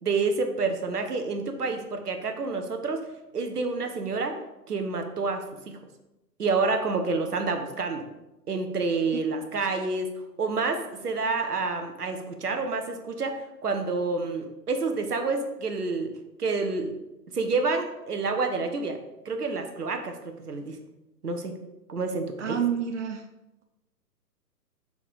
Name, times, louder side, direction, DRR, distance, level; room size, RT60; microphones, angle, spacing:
voice 1, 0.0-3.1 3.3-4.4 4.7-5.8 6.4-8.0 8.5-10.1 10.4-16.1 16.4-16.9 17.3-19.0 19.2-20.8 21.2-21.5 21.9-22.6, right 3 dB, 70° right, 6 dB, 1.1 m, -28 dB
voice 2, 22.4-23.2, right 8 dB, 50° right, 5 dB, 0.5 m, -28 dB
5.8 x 4.0 x 4.6 m, 0.98 s
figure-of-eight pair, 130°, 49 cm